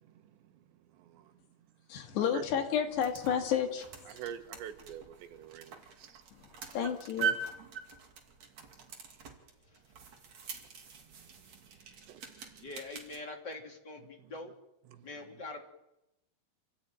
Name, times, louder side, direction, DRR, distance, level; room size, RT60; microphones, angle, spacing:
voice 1, 1.0-1.3 2.2-2.4 4.1-6.2 12.1-12.7 14.2-14.3 14.9-15.1, right 9 dB, 80° right, 9 dB, 3.5 m, -46 dB
voice 2, 1.9-3.9 6.7-7.4, left 8 dB, 75° left, 4 dB, 4.3 m, -31 dB
sound 1, 2.7-13.2, right 6 dB, 45° right, 3.2 m, -42 dB
voice 3, 12.6-14.5 15.0-15.6, left 2 dB, 25° left, 1 dB, 3.1 m, -43 dB
27.5 x 15.5 x 9.1 m, 0.90 s
omnidirectional pair, 5.1 m